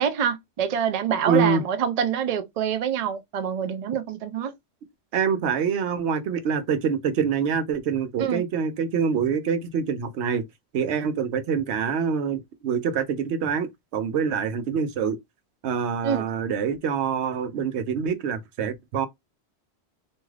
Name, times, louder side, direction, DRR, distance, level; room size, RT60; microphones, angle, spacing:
voice 1, 0.0-4.5 8.2-8.4 16.0-16.3, right 8 dB, 50° right, 0.5 m, -26 dB
voice 2, 1.3-1.6 5.1-10.4 10.7-15.2 15.6-19.1, right 6 dB, 85° right, 0.9 m, -25 dB
2.6 x 2.3 x 3.1 m
omnidirectional pair, 1.1 m